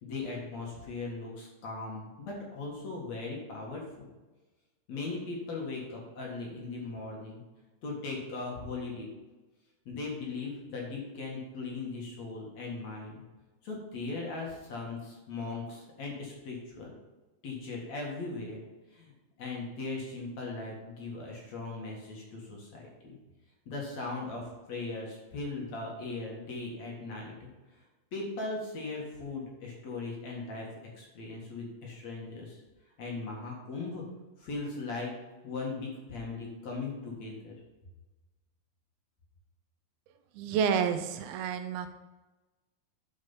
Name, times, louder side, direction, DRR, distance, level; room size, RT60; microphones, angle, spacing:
voice 1, 0.0-4.1 4.9-7.4 7.8-9.1 9.9-13.1 13.6-16.9 17.4-18.6 18.9-19.1 19.4-23.2 23.7-27.5 28.1-30.6 31.0-32.6 33.0-34.0 34.4-35.1 35.4-37.5, left 3 dB, 50° left, -2 dB, 2.6 m, -38 dB
voice 2, 40.4-41.9, right 7 dB, 80° right, 8 dB, 2.4 m, -29 dB
11.5 x 5.1 x 5.6 m, 1.2 s
omnidirectional pair, 4.5 m